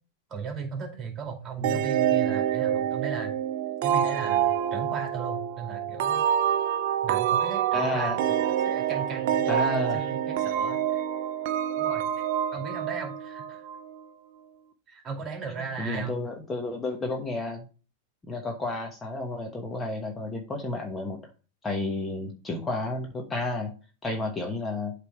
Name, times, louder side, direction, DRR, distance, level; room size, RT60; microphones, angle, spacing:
voice 1, 0.3-3.3 3.8-6.2 7.0-11.0 11.7-12.0 12.5-13.7 14.9-16.2, right 5 dB, 30° right, 3 dB, 2.4 m, -37 dB
sound 1, 1.6-14.0, right 10 dB, 55° right, 0.6 m, -27 dB
voice 2, 7.7-8.2 9.5-10.1 15.8-17.6 18.3-21.2 21.6-23.7 24.0-24.9, left 2 dB, 15° left, 3 dB, 1.2 m, -31 dB
8.1 x 3.5 x 4.7 m, 0.35 s
hypercardioid pair, 100°, 0 cm